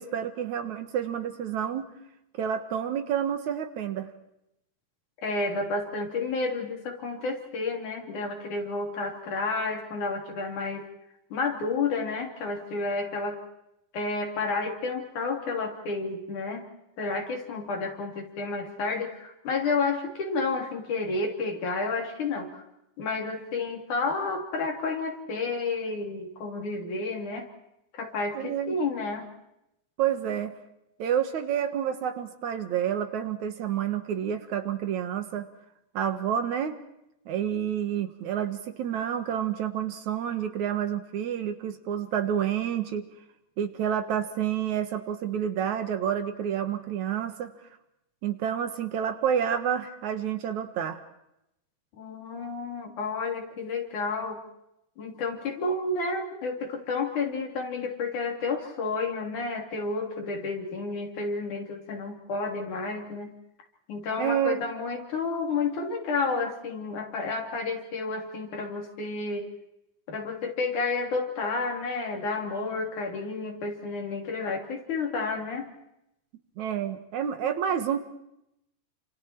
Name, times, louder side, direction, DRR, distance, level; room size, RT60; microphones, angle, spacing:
voice 1, 0.0-1.9 2.4-4.1 28.3-28.8 30.0-30.5 31.0-35.5 35.9-36.8 37.3-43.1 43.6-47.5 48.2-51.0 64.2-64.6 76.6-78.0, right 9 dB, 70° right, 9 dB, 2.7 m, -29 dB
voice 2, 5.2-10.9 11.3-13.4 13.9-16.7 17.0-22.6 23.0-27.5 27.9-29.3 52.0-54.4 55.0-63.3 63.9-69.5 70.1-75.7, left 3 dB, 70° left, 2 dB, 4.7 m, -31 dB
29.0 x 27.0 x 4.5 m, 0.82 s
omnidirectional pair, 3.6 m